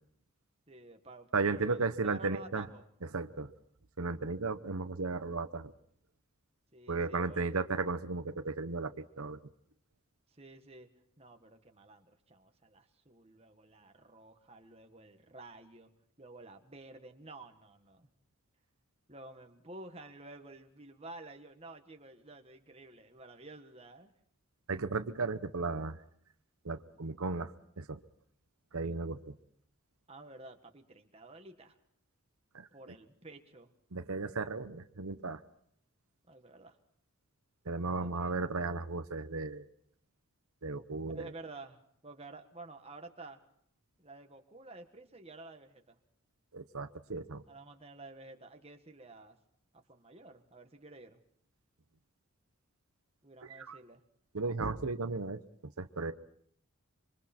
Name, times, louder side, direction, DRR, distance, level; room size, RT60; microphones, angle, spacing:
voice 1, 0.7-2.9 6.7-7.4 10.3-10.9 11.2-15.9 16.2-18.1 19.1-24.1 30.1-31.8 32.7-33.7 36.3-36.8 37.9-38.3 41.1-43.4 44.0-46.0 47.5-49.4 49.7-51.2 53.2-54.0, right 2 dB, 25° right, 5 dB, 1.6 m, -51 dB
voice 2, 1.3-2.6 3.1-3.5 4.0-5.7 6.9-9.4 24.7-26.0 26.6-28.0 28.7-29.3 32.5-32.7 33.9-35.4 37.7-39.7 40.6-41.2 46.5-47.4 53.4-53.8 54.3-55.4 55.8-56.1, right 3 dB, 80° right, 10 dB, 0.9 m, -35 dB
26.5 x 24.0 x 4.4 m, 0.67 s
head